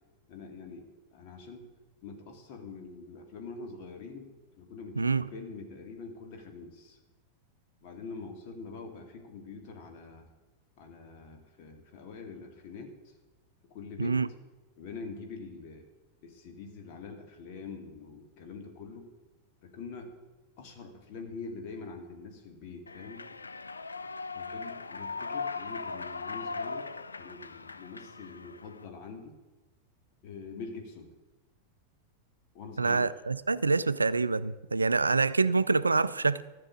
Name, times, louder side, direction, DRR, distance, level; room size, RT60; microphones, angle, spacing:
voice 1, 0.3-1.7 2.0-7.0 7.8-10.2 10.8-12.9 13.7-14.2 14.8-15.8 16.2-19.1 19.6-20.1 20.6-23.2 24.3-26.9 27.2-29.3 30.2-31.1 32.5-33.1, left 4 dB, 45° left, 3 dB, 2.4 m, -44 dB
voice 2, 5.0-5.3 14.0-14.3 32.8-36.4, right 4 dB, 80° right, 17 dB, 0.4 m, -26 dB
Human voice / Clapping / Cheering, 22.9-28.8, left 4 dB, 75° left, 0.5 m, -39 dB
13.5 x 6.7 x 8.5 m, 1.1 s
figure-of-eight pair, 90°, 0 cm